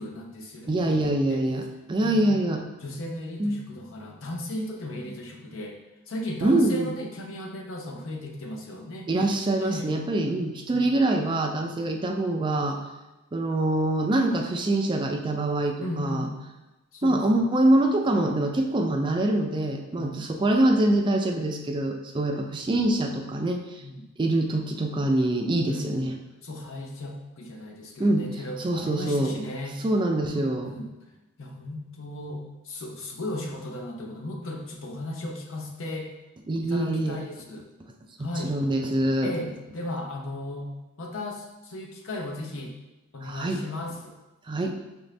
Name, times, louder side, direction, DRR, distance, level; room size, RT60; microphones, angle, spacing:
voice 1, 0.0-1.4 2.0-2.3 2.8-5.8 6.1-9.1 9.6-9.9 10.7-10.8 15.8-16.4 16.9-17.4 20.0-20.3 23.8-24.1 25.7-26.1 26.4-29.8 30.3-30.9 31.4-36.1 36.6-37.7 38.2-38.6 39.2-40.7 41.0-42.7 43.1-44.1, left 1 dB, 65° left, 2 dB, 0.7 m, -36 dB
voice 2, 0.7-2.6 3.4-3.6 6.4-6.9 9.1-12.8 13.3-16.3 17.0-23.8 24.2-26.1 28.0-28.3 28.6-29.3 29.8-30.7 36.5-37.2 38.4-39.3 43.2-43.6 44.5-44.8, right 1 dB, 20° right, 3 dB, 0.3 m, -24 dB
5.8 x 2.6 x 3.2 m, 1.0 s
head